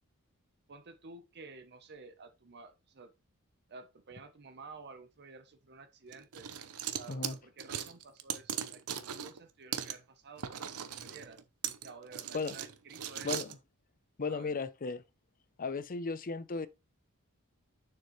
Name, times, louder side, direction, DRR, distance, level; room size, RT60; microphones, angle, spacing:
voice 1, 0.7-3.1 3.7-6.5 6.9-8.8 9.2-10.6 11.0-11.4 11.8-13.4 14.3-14.6, right 4 dB, 50° right, 0.8 m, -52 dB
sound 1, 6.1-9.4 9.7-9.9 10.4-13.5, right 9 dB, 85° right, 0.8 m, -39 dB
voice 2, 14.2-15.0 15.6-16.7, left 4 dB, 40° left, 0.6 m, -35 dB
6.9 x 6.4 x 3.1 m
head